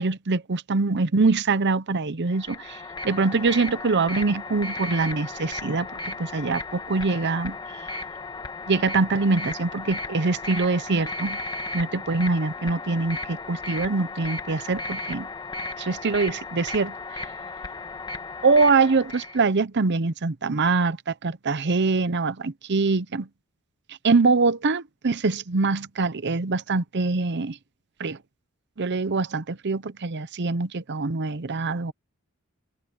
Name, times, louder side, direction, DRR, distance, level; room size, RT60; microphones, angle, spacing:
voice 1, 0.0-7.6 8.7-11.4 11.7-15.3 15.8-17.2 18.4-23.3 23.9-27.6 28.0-28.2 28.8-31.9, right 3 dB, 55° right, 0.8 m, -24 dB
sound 1, 2.3-19.4, left 3 dB, 20° left, 1.5 m, -35 dB
head